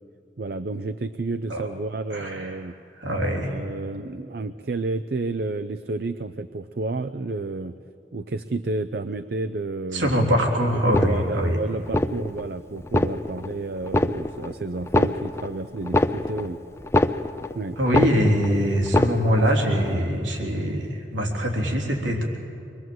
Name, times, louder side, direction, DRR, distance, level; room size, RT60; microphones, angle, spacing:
voice 1, 0.4-2.7 3.3-7.7 8.1-10.1 10.9-16.6 17.5-17.8, right 3 dB, 55° right, 10 dB, 0.5 m, -31 dB
voice 2, 2.1-2.6 3.0-3.5 9.9-11.6 17.8-22.3, equal, 90° right, 1 dB, 3.4 m, -23 dB
sound 1, 10.8-11.5 11.8-12.5 12.8-13.5 13.8-14.5 14.8-17.5 17.8-18.5 18.8-19.5 19.8-20.0, left 1 dB, 15° left, 0.5 m, -24 dB
25.0 x 22.5 x 7.8 m, 2.5 s
head